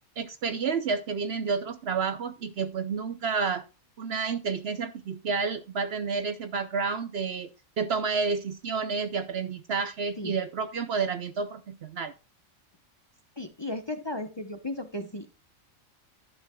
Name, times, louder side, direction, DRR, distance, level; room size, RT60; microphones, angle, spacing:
voice 1, 0.2-3.6 4.0-7.5 7.8-12.1, right 5 dB, 60° right, 0.8 m, -30 dB
voice 2, 13.4-15.4, left 1 dB, 25° left, 0.8 m, -35 dB
11.5 x 9.9 x 2.3 m
omnidirectional pair, 1.4 m